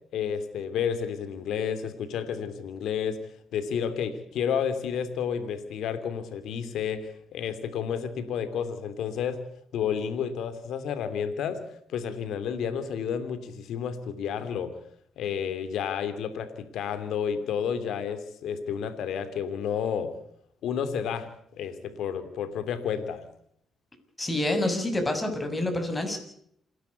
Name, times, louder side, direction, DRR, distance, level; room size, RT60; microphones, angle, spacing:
voice 1, 0.1-3.2 3.5-9.4 9.7-11.6 11.9-14.7 15.2-20.1 20.6-23.2, left 7 dB, 80° left, 10 dB, 2.9 m, -31 dB
voice 2, 24.2-26.2, left 1 dB, 15° left, 6 dB, 6.4 m, -27 dB
28.0 x 12.0 x 8.3 m, 0.68 s
cardioid pair, 90°, 0 cm